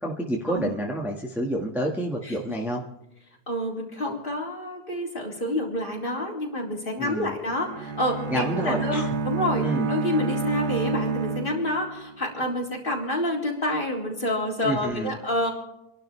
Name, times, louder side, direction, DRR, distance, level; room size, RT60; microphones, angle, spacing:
voice 1, 0.0-2.8 7.0-7.3 8.3-9.1 9.6-9.9 14.6-15.1, right 1 dB, ahead, -2 dB, 1.6 m, -28 dB
voice 2, 2.2-2.7 3.5-15.5, left 1 dB, 35° left, -3 dB, 4.1 m, -28 dB
Bowed string instrument, 7.5-12.2, right 3 dB, 85° right, 1.6 m, -29 dB
28.0 x 12.0 x 3.4 m, 0.86 s
omnidirectional pair, 1.7 m